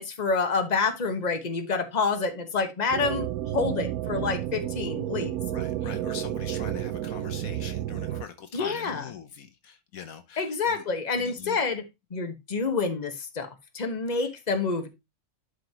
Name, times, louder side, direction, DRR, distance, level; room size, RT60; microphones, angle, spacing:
voice 1, 0.0-3.3 3.5-5.4 8.5-9.0 10.4-11.8 12.1-13.5 13.7-14.9, left 4 dB, 30° left, 1.3 m, -28 dB
sound 1, 2.9-8.2, right 13 dB, 80° right, 1.1 m, -31 dB
voice 2, 5.5-10.8 11.2-11.6, left 7 dB, 70° left, 1.2 m, -42 dB
11.5 x 5.2 x 2.9 m
omnidirectional pair, 1.6 m